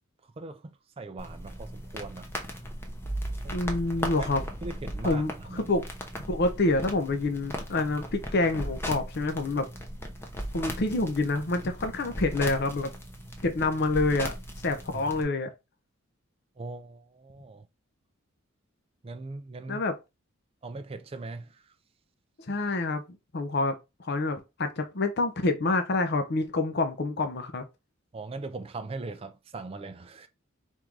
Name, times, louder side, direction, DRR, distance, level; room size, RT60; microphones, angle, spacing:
voice 1, 0.2-2.3 3.4-3.6 4.0-4.3 4.6-5.7 14.9-15.0 16.6-17.7 19.0-19.8 20.6-21.7 28.1-30.3, right 3 dB, 30° right, 0.4 m, -40 dB
sound 1, 1.2-15.2, equal, 10° left, 0.7 m, -37 dB
voice 2, 3.5-4.4 5.0-5.9 6.3-9.7 10.5-12.9 13.4-14.3 14.6-15.5 19.7-19.9 22.5-23.0 23.3-27.6, left 2 dB, 50° left, 0.6 m, -27 dB
3.6 x 2.6 x 4.6 m
head